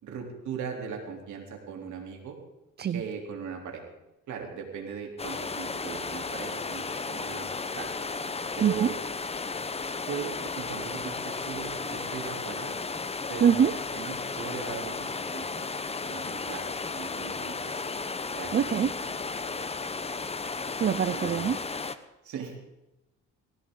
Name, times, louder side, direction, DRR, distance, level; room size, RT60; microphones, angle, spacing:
voice 1, 0.0-2.4 2.9-3.8 4.3-7.9 8.6-8.9 10.1-12.7 13.3-15.7 16.0-17.8 18.3-19.2 19.5-19.7 21.0-21.5 22.2-22.6, right 6 dB, 75° right, 2 dB, 3.2 m, -39 dB
sound 1, 5.2-22.0, left 4 dB, 20° left, 0.8 m, -34 dB
voice 2, 8.6-8.9 13.4-13.7 18.5-18.9 20.8-21.6, right 8 dB, 35° right, 15 dB, 0.4 m, -24 dB
18.0 x 16.0 x 3.8 m, 0.95 s
cardioid pair, 90°, 30 cm